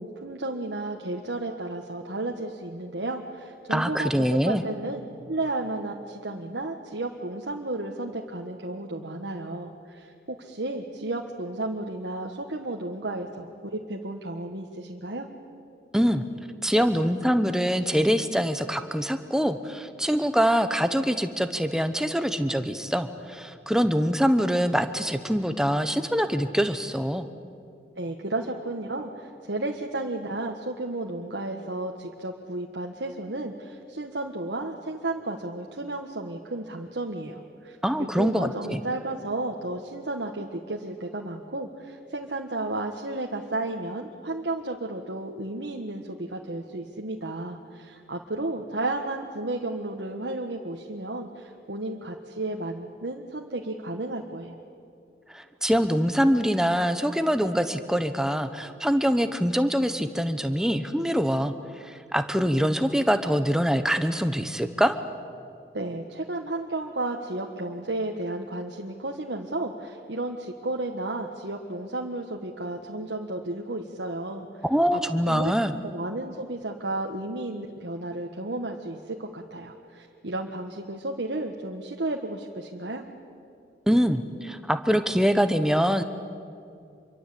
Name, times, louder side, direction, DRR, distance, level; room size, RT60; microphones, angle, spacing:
voice 1, 0.0-5.0 5.3-15.3 27.9-54.6 65.7-74.5 74.9-75.5 75.8-83.0, right 2 dB, 85° right, 1 dB, 1.5 m, -33 dB
voice 2, 3.7-4.6 15.9-16.2 16.6-27.3 37.8-38.8 55.3-65.0 74.6-75.7 83.9-86.0, equal, 5° right, 9 dB, 1.0 m, -24 dB
26.0 x 23.5 x 8.5 m, 2.5 s
head